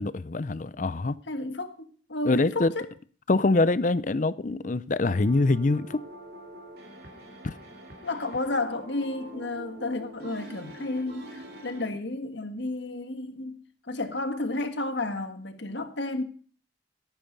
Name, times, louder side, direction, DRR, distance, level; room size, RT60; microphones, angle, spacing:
voice 1, 0.0-1.2 2.2-2.7 3.3-6.0 7.4-7.5, left 2 dB, 45° left, 0.5 m, -24 dB
voice 2, 1.3-2.9 8.0-13.6 13.9-16.2, left 2 dB, 75° left, 1.6 m, -32 dB
sound 1, 5.0-11.9, right 1 dB, 55° right, 3.2 m, -45 dB
16.0 x 9.1 x 5.3 m
head